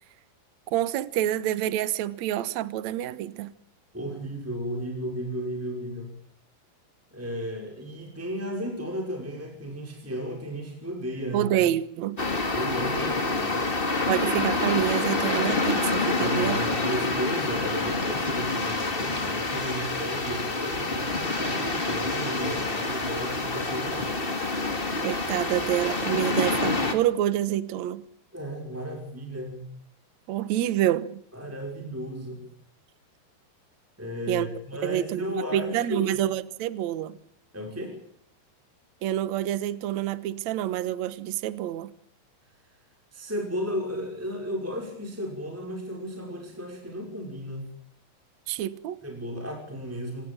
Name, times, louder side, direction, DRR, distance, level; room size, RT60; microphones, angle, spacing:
voice 1, 0.7-3.5 11.3-12.2 14.1-16.6 25.0-28.0 30.3-31.2 34.3-34.5 34.8-37.2 39.0-41.9 48.5-49.0, right 12 dB, 70° right, 1.8 m, -27 dB
voice 2, 3.9-6.1 7.1-11.5 12.5-13.6 16.2-24.2 28.3-29.7 31.3-32.4 34.0-36.1 37.5-37.9 43.1-47.7 49.0-50.2, equal, 5° right, 5.3 m, -34 dB
sound 1, 12.2-26.9, left 3 dB, 20° left, 1.5 m, -27 dB
26.5 x 19.5 x 8.9 m
omnidirectional pair, 4.8 m